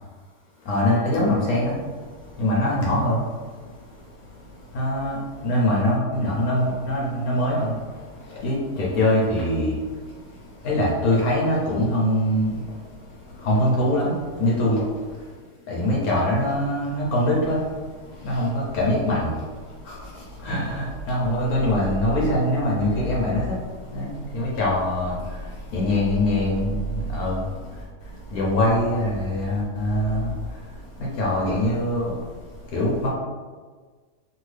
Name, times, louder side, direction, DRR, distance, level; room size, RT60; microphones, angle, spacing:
voice 1, 0.7-1.7 2.4-3.2 4.7-5.2 5.4-7.7 8.4-9.7 10.6-12.5 13.4-14.1 14.4-14.8 15.7-17.6 18.2-19.3 19.9-20.0 20.4-23.6 23.9-25.2 25.7-27.4 28.3-30.3 31.2-32.1 32.7-33.1, left 1 dB, 65° left, -5 dB, 1.0 m, -22 dB
2.7 x 2.7 x 3.2 m, 1.5 s
omnidirectional pair, 1.9 m